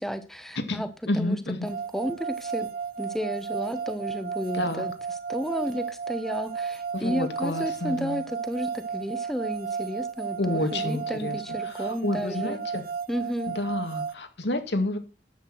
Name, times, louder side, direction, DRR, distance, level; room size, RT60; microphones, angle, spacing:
voice 1, 0.0-0.9 1.1-1.4 1.6-2.7 3.0-4.9 5.3-12.6 13.1-13.5, equal, ahead, 10 dB, 1.0 m, -32 dB
voice 2, 0.6-1.7 4.5-4.9 6.9-8.2 10.4-12.8 13.5-15.0, left 1 dB, 80° left, 7 dB, 2.0 m, -30 dB
sound 1, 1.6-14.1, right 6 dB, 55° right, 0.7 m, -33 dB
11.0 x 8.3 x 6.0 m, 0.34 s
head